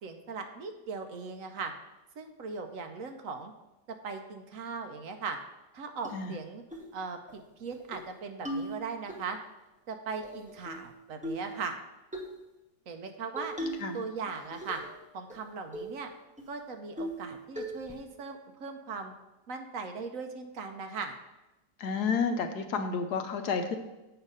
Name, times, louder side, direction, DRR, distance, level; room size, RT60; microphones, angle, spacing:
voice 1, 0.0-1.7 2.2-3.5 4.0-5.4 5.7-6.6 6.9-9.4 9.9-11.8 12.9-13.5 13.9-14.8 15.1-16.1 16.5-19.1 19.5-21.1, right 5 dB, 65° right, 6 dB, 0.9 m, -39 dB
sound 1, 6.0-6.1 6.7-6.9 7.3-7.4 7.7-8.1 8.4-9.2 10.2-10.9 11.2-11.5 12.1-12.3 13.4-13.9 14.3-14.9 15.3-15.4 15.7-16.0 16.4-16.5 17.0-17.3 17.6-18.0, right 1 dB, 5° right, 0.7 m, -38 dB
voice 2, 21.8-23.8, left 5 dB, 65° left, 7 dB, 1.1 m, -30 dB
8.0 x 4.9 x 5.5 m, 1.0 s
omnidirectional pair, 2.0 m